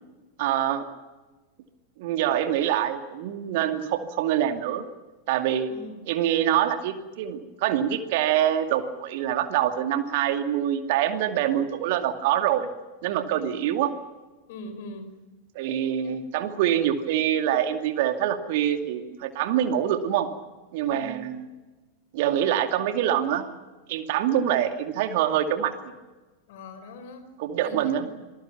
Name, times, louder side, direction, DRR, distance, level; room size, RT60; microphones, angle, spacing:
voice 1, 0.4-0.9 2.0-4.8 5.3-5.7 6.1-12.7 13.0-13.9 15.5-20.3 20.7-21.4 22.1-23.5 23.9-25.7 27.4-28.1, right 10 dB, 50° right, 7 dB, 2.4 m, -25 dB
voice 2, 5.7-6.0 13.3-13.7 14.5-15.1 16.0-16.3 20.8-21.3 26.5-27.3 27.6-28.2, left 1 dB, 50° left, 9 dB, 4.8 m, -42 dB
27.0 x 21.0 x 6.1 m, 1.2 s
figure-of-eight pair, 90°, 0 cm